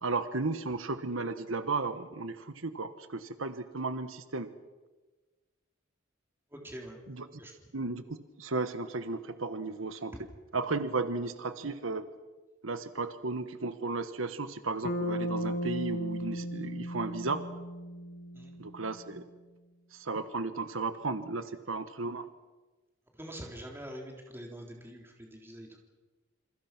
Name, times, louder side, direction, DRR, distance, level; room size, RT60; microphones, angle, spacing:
voice 1, 0.0-4.5 7.1-7.3 7.7-10.1 10.5-12.1 12.6-17.4 18.6-19.2 19.9-22.3, right 3 dB, 80° right, 11 dB, 1.3 m, -34 dB
voice 2, 6.5-7.0 7.3-7.5 10.1-10.2 18.3-18.5 21.4-21.5 23.2-25.8, equal, 10° right, 1 dB, 3.7 m, -45 dB
Bass guitar, 14.8-18.9, equal, 50° left, 2.3 m, -35 dB
28.0 x 26.5 x 6.1 m, 1.3 s
head